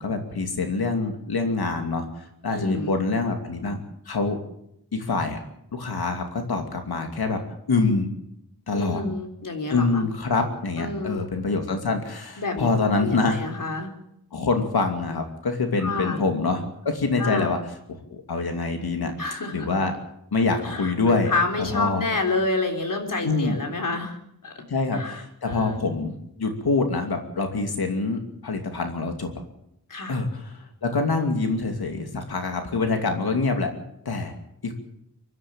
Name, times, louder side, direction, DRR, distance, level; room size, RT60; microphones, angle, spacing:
voice 1, 0.0-2.0 2.4-3.8 4.1-4.4 4.9-5.4 5.7-7.4 7.7-8.1 8.7-9.0 9.7-13.4 14.3-17.6 17.9-19.1 19.5-19.9 20.3-21.3 21.6-22.0 23.2-23.6 24.7-29.3 30.1-33.7 34.0-34.3 34.6-34.7, left 3 dB, 70° left, 4 dB, 2.7 m, -25 dB
voice 2, 2.5-3.0 8.7-10.1 10.8-11.2 12.4-13.9 15.8-16.2 17.2-17.5 19.2-19.7 20.6-24.2 24.4-24.5 24.9-25.2 25.5-25.9 29.9-30.2, left 3 dB, 55° left, 4 dB, 4.0 m, -29 dB
24.5 x 12.5 x 8.9 m, 0.76 s
wide cardioid pair, 145°, 39 cm